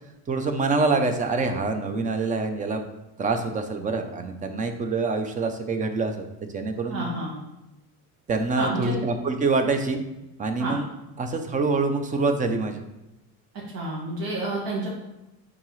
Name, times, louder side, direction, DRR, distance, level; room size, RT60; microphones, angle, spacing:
voice 1, 0.3-2.8 3.2-7.1 8.3-10.0 10.4-10.9 11.2-12.8, right 3 dB, 20° right, 6 dB, 0.5 m, -25 dB
voice 2, 6.9-7.3 8.6-9.0 10.6-10.8 13.7-14.9, right 2 dB, 65° right, -4 dB, 1.9 m, -29 dB
8.8 x 3.7 x 3.1 m, 0.94 s
cardioid pair, 150°, 37 cm